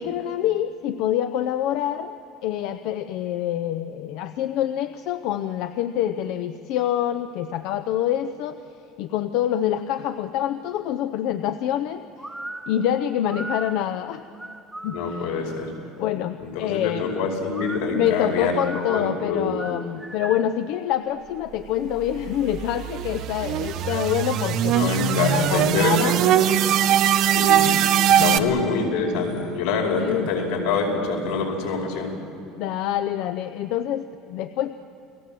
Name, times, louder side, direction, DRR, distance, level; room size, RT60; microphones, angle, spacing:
voice 1, 0.0-2.1 2.4-8.6 9.0-12.0 12.7-14.2 14.8-15.4 16.0-17.1 17.9-26.2 28.2-28.4 29.9-30.3 32.6-34.7, left 11 dB, 55° left, 10 dB, 0.6 m, -26 dB
sound 1, 12.2-15.5 17.5-20.6, right 1 dB, 5° right, 0.9 m, -38 dB
voice 2, 14.9-15.7 16.4-19.6 24.7-26.1 27.2-32.2, left 4 dB, 80° left, 1 dB, 5.1 m, -26 dB
sound 2, 22.0-28.4, right 10 dB, 45° right, 0.8 m, -21 dB
29.5 x 19.0 x 7.6 m, 2.8 s
cardioid pair, 180°, 0 cm